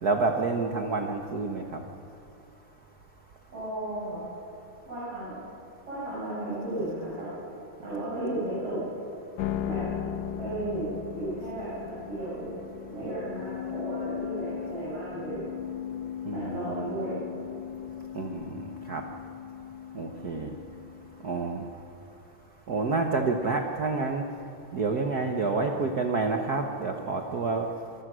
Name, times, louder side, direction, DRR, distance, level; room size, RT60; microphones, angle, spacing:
voice 1, 0.0-1.8 16.3-16.7 18.1-19.0 19.9-20.5 21.2-21.7 22.7-24.2 24.7-27.7, right 3 dB, 75° right, 4 dB, 0.8 m, -28 dB
voice 2, 3.5-4.2 4.9-5.4 5.9-7.3 7.8-8.8 9.6-9.8 10.4-11.7 12.1-12.5 12.9-15.4 16.3-17.2 25.5-25.6, right 1 dB, 50° right, -10 dB, 8.3 m, -34 dB
sound 1, 9.4-21.7, left 10 dB, 70° left, 2.0 m, -38 dB
26.5 x 23.0 x 6.3 m, 2.8 s
omnidirectional pair, 3.6 m